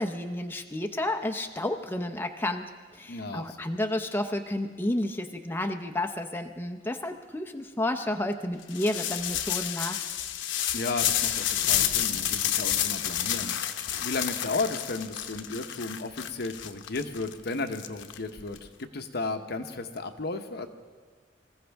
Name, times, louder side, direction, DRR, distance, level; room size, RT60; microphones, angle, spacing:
voice 1, 0.0-10.0, left 1 dB, 10° left, 5 dB, 0.6 m, -31 dB
voice 2, 3.1-3.6 10.7-13.6 14.0-20.7, left 3 dB, 60° left, 7 dB, 0.9 m, -34 dB
sound 1, 8.7-18.6, left 10 dB, 85° left, 0.7 m, -30 dB
25.0 x 15.0 x 3.5 m, 1.6 s
head